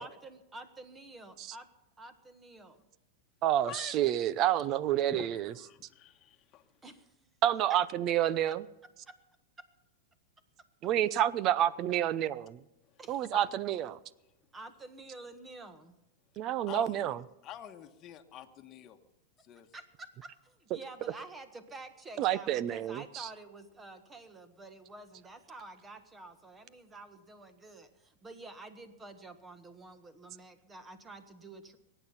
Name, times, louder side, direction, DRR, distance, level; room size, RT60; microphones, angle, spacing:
voice 1, 0.0-1.7 2.0-2.8 6.8-7.1 7.7-7.8 9.1-9.2 13.0-13.3 14.5-15.9 19.7-31.8, right 2 dB, 15° right, 1.5 m, -49 dB
voice 2, 3.4-5.5 7.4-8.6 10.8-12.6 13.1-14.0 16.4-17.2 22.2-23.3, right 11 dB, 40° right, 0.6 m, -29 dB
voice 3, 5.1-6.7 13.3-13.4 16.7-17.1 17.4-19.0 19.4-19.7, left 11 dB, 35° left, 1.3 m, -47 dB
22.5 x 9.2 x 5.7 m
hypercardioid pair, 120°, 0 cm